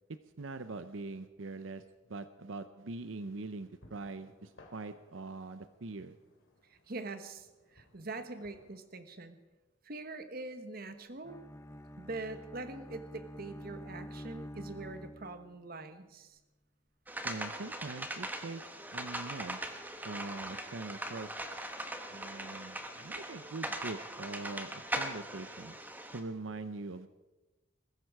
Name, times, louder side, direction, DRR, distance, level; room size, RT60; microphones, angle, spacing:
voice 1, 0.4-1.8 2.1-6.1 17.2-18.6 18.9-19.8 20.0-21.3 22.1-25.8 26.1-27.1, right 3 dB, 80° right, 11 dB, 0.7 m, -43 dB
sound 1, 3.2-8.8, left 1 dB, 85° left, 2.8 m, -63 dB
voice 2, 6.7-9.4 9.8-11.4 12.0-16.4, right 2 dB, 50° right, 9 dB, 1.2 m, -43 dB
Bowed string instrument, 11.2-15.7, equal, 15° left, 0.7 m, -48 dB
sound 2, 17.1-26.2, right 1 dB, 10° right, 1.2 m, -40 dB
21.5 x 14.0 x 4.8 m, 1.1 s
head